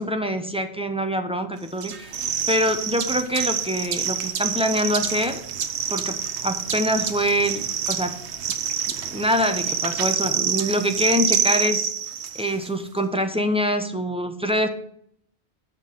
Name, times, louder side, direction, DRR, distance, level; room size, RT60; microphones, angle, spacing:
voice 1, 0.0-2.1 2.5-5.4 5.9-8.2 9.1-11.9 12.3-14.7, equal, 5° right, 6 dB, 0.7 m, -24 dB
sound 1, 1.8-12.7, right 8 dB, 85° right, 1.0 m, -27 dB
8.2 x 5.6 x 6.6 m, 0.67 s
omnidirectional pair, 1.1 m